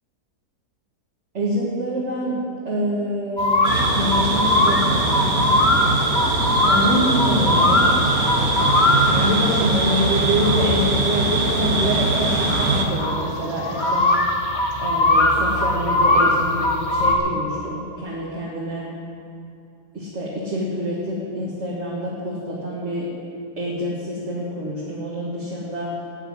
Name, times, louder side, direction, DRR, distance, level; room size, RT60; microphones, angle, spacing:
voice 1, 1.3-2.4 2.6-5.1 6.6-7.9 9.0-14.1 14.8-18.9 19.9-23.1 23.6-26.0, equal, 45° right, -5 dB, 2.3 m, -26 dB
sound 1, 3.4-17.1, left 1 dB, 30° left, 1.3 m, -21 dB
sound 2, 3.6-12.9, right 2 dB, 65° right, 2.1 m, -22 dB
14.5 x 8.1 x 9.6 m, 2.7 s
omnidirectional pair, 1.7 m